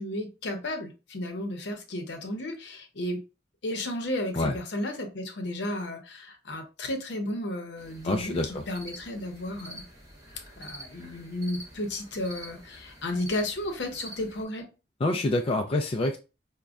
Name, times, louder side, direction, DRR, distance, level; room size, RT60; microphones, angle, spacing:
voice 1, 0.0-3.2 3.6-9.8 10.6-14.7, left 1 dB, 70° left, 4 dB, 0.8 m, -33 dB
sound 1, 7.8-14.4, right 1 dB, 20° right, 1.1 m, -47 dB
voice 2, 8.0-8.6 15.0-16.2, left 2 dB, 30° left, 3 dB, 0.3 m, -26 dB
5.0 x 2.2 x 2.3 m, 0.31 s
head